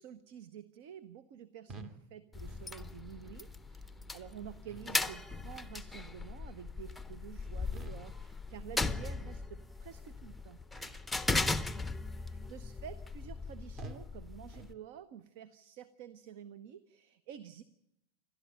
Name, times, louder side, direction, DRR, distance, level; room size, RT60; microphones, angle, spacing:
voice 1, 0.0-10.6 12.2-17.6, right 9 dB, 50° right, 16 dB, 0.8 m, -50 dB
sound 1, 1.7-2.0 2.4-2.7 3.2-3.4 3.9-4.1 4.7-5.0 5.4-5.7 6.2-6.4 6.9-7.1 7.7-8.1 8.5-8.8 9.2-9.4 10.0-10.1 10.7-11.1 11.5-11.8 12.3-12.5 13.0-13.1 13.8-14.1 14.5-14.8, right 2 dB, 30° right, 1.9 m, -51 dB
sound 2, 2.3-14.7, left 3 dB, 5° left, 0.8 m, -38 dB
28.5 x 12.5 x 9.1 m, 0.83 s
figure-of-eight pair, 90°, 0 cm